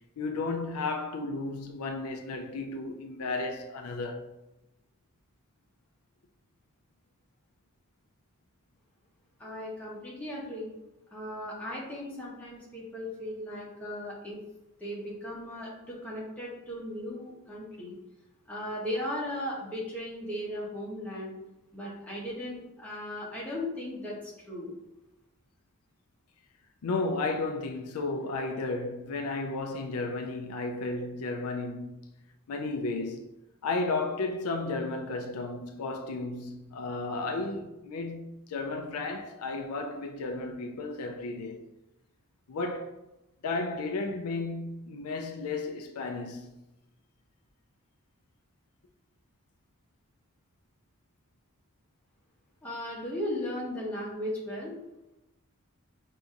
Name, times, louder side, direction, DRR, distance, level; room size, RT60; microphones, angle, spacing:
voice 1, 0.2-4.3 26.8-32.0 32.5-33.3 33.6-41.7 42.5-42.9 43.4-46.5, left 3 dB, 80° left, 0.4 m, -33 dB
voice 2, 9.4-10.7 11.1-14.4 14.8-18.0 18.5-21.3 21.7-24.7 52.6-54.8, left 1 dB, 5° left, 1.0 m, -37 dB
5.8 x 2.7 x 2.5 m
head